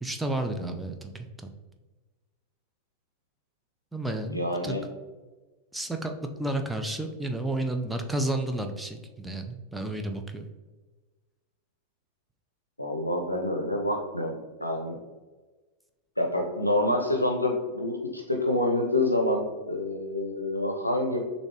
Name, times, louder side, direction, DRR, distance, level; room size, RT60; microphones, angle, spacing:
voice 1, 0.0-1.5 3.9-4.8 5.7-6.1 6.4-10.4, right 1 dB, 5° right, 4 dB, 0.5 m, -31 dB
voice 2, 4.3-4.8 12.8-15.0 16.2-21.2, left 1 dB, 85° left, 2 dB, 0.5 m, -27 dB
6.4 x 2.7 x 3.1 m, 1.3 s
figure-of-eight pair, 90°, 0 cm